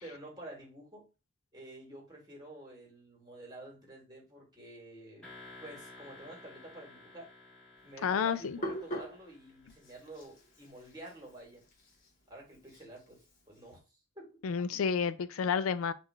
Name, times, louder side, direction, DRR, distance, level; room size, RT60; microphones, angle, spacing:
voice 1, 0.0-1.1 1.5-5.2 5.6-7.3 7.8-11.6 12.3-14.3, right 1 dB, 20° right, 1.6 m, -50 dB
sound 1, 5.2-10.1, left 3 dB, 5° left, 1.4 m, -54 dB
Hands, 7.8-13.7, right 1 dB, 40° left, 1.3 m, -44 dB
voice 2, 8.0-8.6 14.4-15.9, left 6 dB, 85° left, 0.4 m, -30 dB
3.6 x 2.5 x 4.4 m
head